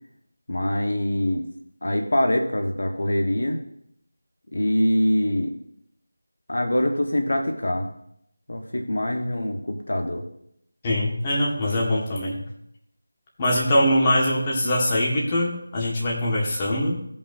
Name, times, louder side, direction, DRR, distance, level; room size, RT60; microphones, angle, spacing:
voice 1, 0.5-1.5 1.8-3.6 4.5-5.5 6.5-7.9 8.5-10.2, left 1 dB, 70° left, 3 dB, 1.3 m, -24 dB
voice 2, 10.8-12.4 13.4-17.0, left 1 dB, 20° left, -3 dB, 1.6 m, -22 dB
15.5 x 5.4 x 2.7 m, 0.72 s
figure-of-eight pair, 170°, 0 cm